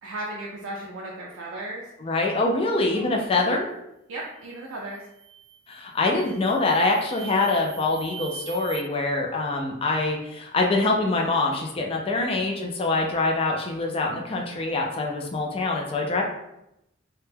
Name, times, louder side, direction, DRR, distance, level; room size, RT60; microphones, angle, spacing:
voice 1, 0.0-1.9 2.8-3.0 3.4-3.5 4.1-5.0, right 2 dB, 70° right, -4 dB, 0.4 m, -36 dB
voice 2, 2.0-3.7 5.7-16.2, left 2 dB, 25° left, 1 dB, 0.3 m, -24 dB
sound 1, 4.4-4.7 5.1-5.7 6.2-8.8, right 9 dB, 20° right, 0.7 m, -42 dB
2.1 x 2.1 x 3.1 m, 0.84 s
head